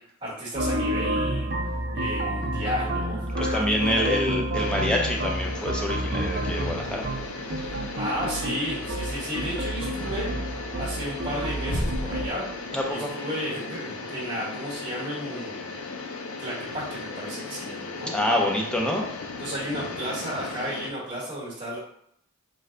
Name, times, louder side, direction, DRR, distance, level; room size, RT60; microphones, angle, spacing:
voice 1, 0.2-4.2 7.6-12.4 12.9-15.8 16.4-18.1 19.4-21.8, equal, 20° right, -8 dB, 1.1 m, -33 dB
sound 1, 0.5-12.3, right 1 dB, 50° right, 0.5 m, -30 dB
voice 2, 3.4-7.0 7.5-7.9 12.7-13.1 18.1-19.0, left 1 dB, 5° left, -1 dB, 0.4 m, -27 dB
sound 2, 4.5-20.9, left 3 dB, 75° left, 0.5 m, -36 dB
Bass drum, 11.7-13.1, equal, 45° left, 1.1 m, -31 dB
3.2 x 2.2 x 3.7 m, 0.73 s
head